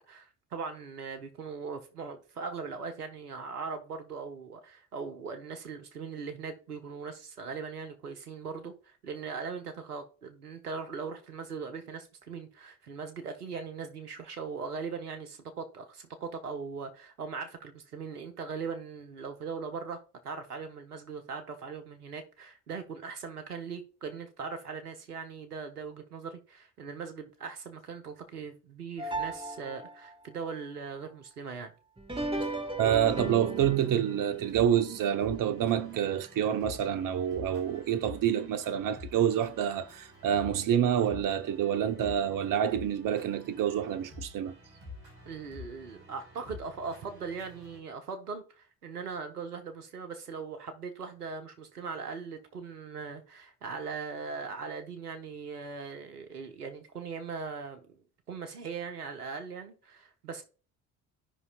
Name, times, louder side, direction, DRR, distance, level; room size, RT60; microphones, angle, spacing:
voice 1, 0.1-31.7 45.3-58.0 58.3-60.4, right 5 dB, 85° right, 1.0 m, -40 dB
sound 1, 29.0-30.1 32.0-36.4 36.8-36.9 37.8-37.9 38.6-38.7, right 2 dB, 10° right, 1.6 m, -38 dB
voice 2, 32.8-44.5, right 9 dB, 45° right, 0.8 m, -27 dB
sound 2, 32.9-47.8, left 3 dB, 70° right, 4.5 m, -49 dB
14.0 x 5.4 x 2.3 m
figure-of-eight pair, 45°, 44 cm